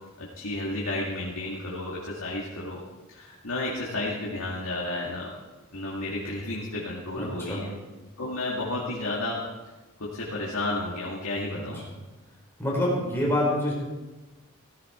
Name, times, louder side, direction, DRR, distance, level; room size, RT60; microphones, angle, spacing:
voice 1, 0.2-2.8 3.1-5.3 5.7-7.7 8.2-9.4 10.0-11.8, left 2 dB, 85° left, -5 dB, 2.3 m, -32 dB
voice 2, 7.2-7.6 11.5-11.6 12.6-13.7, left 1 dB, 10° left, -4 dB, 4.9 m, -26 dB
16.0 x 13.5 x 4.6 m, 1.2 s
head